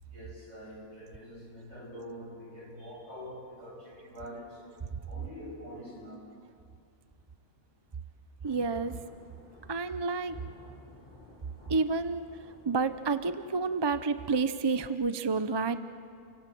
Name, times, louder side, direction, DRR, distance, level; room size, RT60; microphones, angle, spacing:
voice 1, 0.0-4.7 5.1-6.3, equal, 55° right, 6.8 m, -45 dB
Thunder / Rain, 8.4-14.4, left 1 dB, 40° left, 6.2 m, -55 dB
voice 2, 8.4-9.0 9.7-10.4 11.7-12.3 12.7-15.8, right 4 dB, 30° right, 0.5 m, -29 dB
29.5 x 24.0 x 7.8 m
omnidirectional pair, 1.4 m